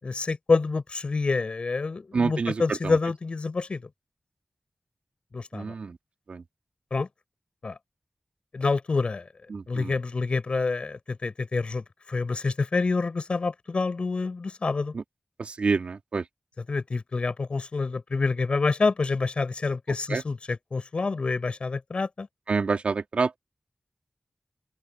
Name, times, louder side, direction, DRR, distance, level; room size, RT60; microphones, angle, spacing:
voice 1, 0.0-3.8 5.3-5.7 6.9-7.1 7.6-7.8 8.5-9.3 9.7-14.9 16.6-22.3, left 4 dB, 65° left, 6.0 m, -27 dB
voice 2, 2.1-2.5 5.5-6.0 6.3-6.4 9.5-9.9 14.9-15.0 15.6-16.2 20.1-20.2 22.5-23.4, right 4 dB, 85° right, 2.7 m, -27 dB
open air
wide cardioid pair, 65°, 2 cm